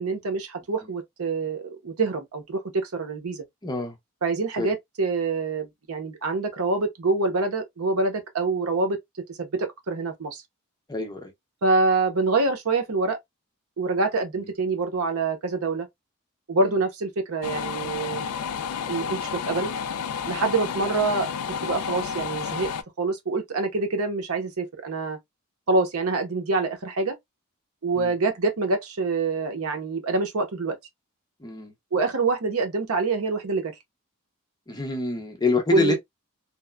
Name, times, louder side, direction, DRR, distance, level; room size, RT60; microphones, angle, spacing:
voice 1, 0.0-3.4 4.2-9.0 9.3-10.4 11.6-13.2 13.8-15.9 16.5-18.3 18.9-19.7 20.3-21.3 21.6-22.7 23.0-25.2 25.7-27.2 27.8-30.8 31.9-33.7 35.7-36.0, right 3 dB, 75° right, 0.8 m, -26 dB
voice 2, 3.6-4.0 4.6-4.7 10.9-11.3 14.3-14.5 16.6-16.7 27.9-28.1 31.4-31.7 34.7-36.0, left 3 dB, 20° left, 0.7 m, -27 dB
sound 1, 17.4-22.8, left 7 dB, 85° left, 0.3 m, -31 dB
3.0 x 2.1 x 2.2 m
head